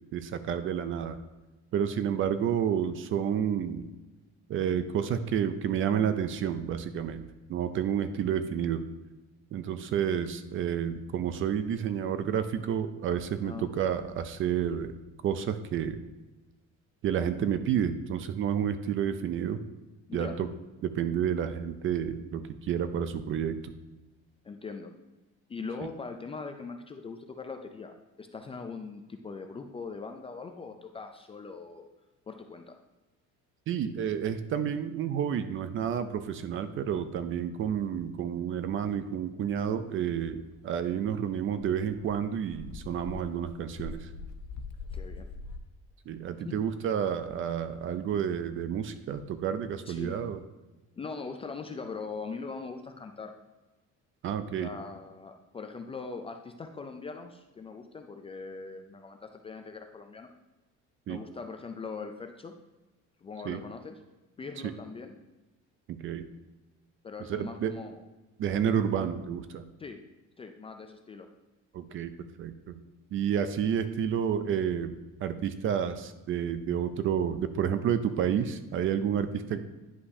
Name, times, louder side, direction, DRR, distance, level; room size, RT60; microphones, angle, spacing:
voice 1, 0.1-1.2 1.7-3.9 4.5-8.8 9.5-14.9 15.2-16.0 17.0-19.6 20.1-20.5 20.8-23.7 33.7-44.1 46.1-50.4 54.2-54.7 61.1-61.2 63.4-63.6 64.6-64.7 65.9-66.3 67.3-67.7 68.4-69.6 71.7-72.1 72.4-72.8 73.1-79.6, right 8 dB, 40° right, 11 dB, 0.5 m, -30 dB
voice 2, 24.4-24.9 25.5-31.9 32.3-32.8 44.9-45.3 46.4-46.6 49.9-50.1 51.0-53.4 54.6-60.3 61.1-62.5 63.2-64.0 64.4-65.1 67.0-68.0 69.8-70.0 70.4-71.3, left 4 dB, 20° left, 5 dB, 0.3 m, -41 dB
Dog, 41.0-41.1 41.4-45.6, left 4 dB, 75° left, 0.7 m, -42 dB
10.0 x 5.5 x 2.7 m, 1.1 s
cardioid pair, 160°, 31 cm